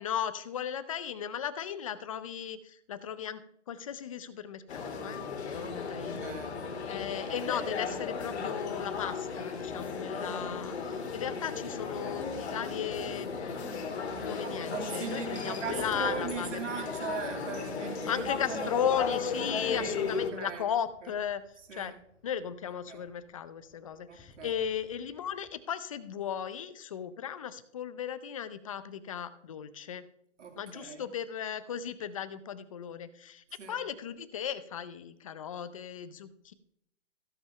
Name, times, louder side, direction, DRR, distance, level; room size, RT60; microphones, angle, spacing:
voice 1, 0.0-5.2 5.5-6.4 6.8-16.6 18.1-21.4 21.7-21.9 22.2-30.1 30.6-36.5, left 8 dB, 30° left, 14 dB, 0.6 m, -36 dB
sound 1, 4.7-20.3, left 5 dB, 55° left, 2.4 m, -35 dB
voice 2, 5.9-6.5 6.9-7.4 14.4-18.7 19.7-20.6 21.7-21.9 22.9-23.0 24.1-24.5 30.4-31.1 33.6-33.7, right 7 dB, 70° right, 3 dB, 2.5 m, -40 dB
sound 2, 15.6-25.5, left 2 dB, 10° left, 1.5 m, -50 dB
15.5 x 5.3 x 5.7 m, 0.73 s
hypercardioid pair, 155°, 38 cm